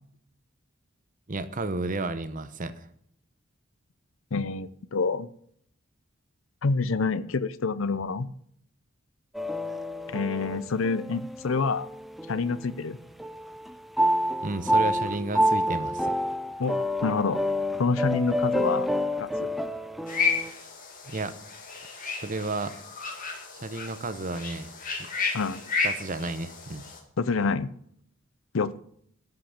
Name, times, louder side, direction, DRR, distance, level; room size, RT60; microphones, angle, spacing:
voice 1, 1.3-2.9 14.4-16.1 21.1-21.3 22.1-22.7 23.5-24.7 25.0-25.1 25.8-26.9, right 3 dB, 40° right, 11 dB, 0.9 m, -32 dB
voice 2, 4.3-5.3 6.6-8.3 10.1-11.9 12.3-13.0 16.6-16.7 17.0-17.4 17.8-18.9 19.2-19.5 25.3-25.6 27.2-27.7 28.5-28.8, left 4 dB, 75° left, 16 dB, 0.6 m, -27 dB
sound 1, 9.3-12.9 13.2-20.5, equal, ahead, 0.6 m, -28 dB
sound 2, 20.1-27.0, left 5 dB, 40° left, 2.1 m, -32 dB
13.5 x 5.9 x 7.2 m, 0.67 s
head